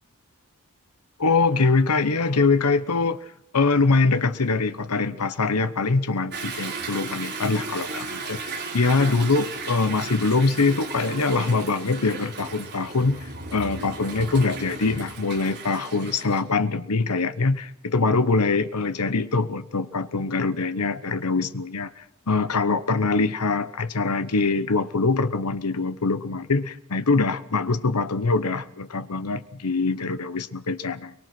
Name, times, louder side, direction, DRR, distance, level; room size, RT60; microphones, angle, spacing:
voice 1, 1.2-3.2 3.5-31.1, left 3 dB, 85° left, 13 dB, 1.0 m, -23 dB
Toilet flush / Drip / Trickle dribble, 6.3-16.4, right 4 dB, 50° right, 4.0 m, -35 dB
23.5 x 22.0 x 6.0 m, 0.73 s
head